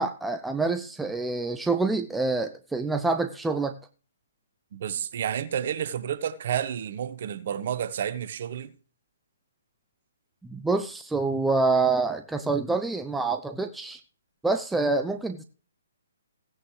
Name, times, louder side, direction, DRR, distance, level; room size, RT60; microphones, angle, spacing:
voice 1, 0.0-3.8 10.4-14.0 14.4-15.4, right 3 dB, 5° right, 0.7 m, -26 dB
voice 2, 4.7-8.7, right 9 dB, 50° right, 1.2 m, -30 dB
16.5 x 9.2 x 3.3 m
figure-of-eight pair, 135°, 0 cm